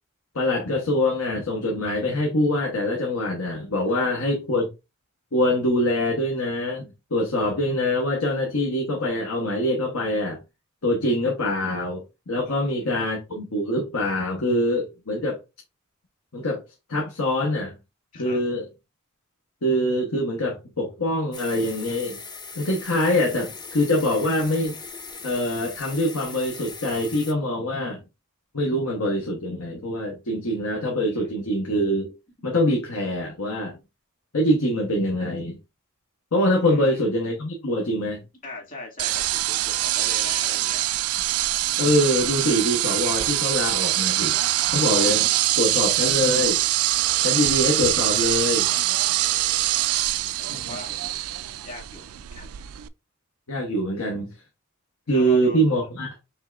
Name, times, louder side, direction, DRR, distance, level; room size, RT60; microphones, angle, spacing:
voice 1, 0.3-4.7 5.3-10.4 10.8-15.4 16.3-16.6 16.9-17.7 18.2-18.6 19.6-22.2 22.6-24.7 25.2-28.0 28.5-32.1 32.4-33.8 34.3-35.6 36.3-38.2 41.8-44.4 44.7-45.3 45.6-46.6 47.2-48.7 50.5-50.7 53.5-54.3 55.1-56.1, left 1 dB, 85° left, 1.1 m, -24 dB
voice 2, 12.5-13.2 18.1-18.4 31.1-31.3 36.6-37.1 38.4-40.9 49.6-49.9 50.5-51.2 51.6-52.5 55.1-55.6, left 2 dB, 40° left, 2.0 m, -40 dB
sound 1, 21.3-27.3, left 4 dB, 20° left, 0.6 m, -39 dB
sound 2, 39.0-52.9, right 15 dB, 75° right, 0.3 m, -24 dB
5.4 x 3.4 x 2.4 m
head